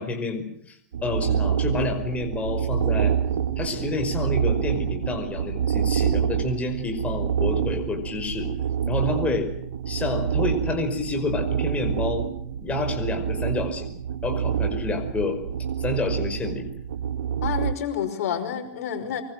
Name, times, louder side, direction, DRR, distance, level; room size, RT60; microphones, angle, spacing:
voice 1, 0.0-3.1 3.6-8.5 8.9-9.5 9.9-12.3 12.6-13.9 14.2-15.4 15.8-16.7, left 3 dB, 15° left, 4 dB, 5.3 m, -29 dB
sound 1, 0.9-17.7, right 8 dB, 90° right, 1.9 m, -27 dB
voice 2, 17.4-19.2, left 9 dB, 75° left, 7 dB, 5.4 m, -29 dB
25.0 x 24.0 x 7.8 m, 0.68 s
supercardioid pair, 135°, 8 cm